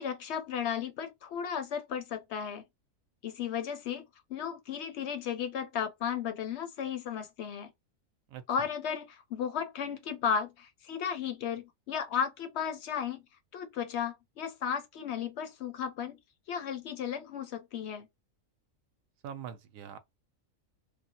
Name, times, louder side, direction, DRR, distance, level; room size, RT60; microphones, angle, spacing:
voice 1, 0.0-2.6 3.2-4.0 4.3-7.7 8.5-13.2 13.5-16.2 16.5-18.1, left 7 dB, 65° left, 0.8 m, -34 dB
voice 2, 8.3-8.7 19.2-20.0, right 8 dB, 85° right, 1.0 m, -43 dB
3.2 x 2.1 x 2.8 m
omnidirectional pair, 1.4 m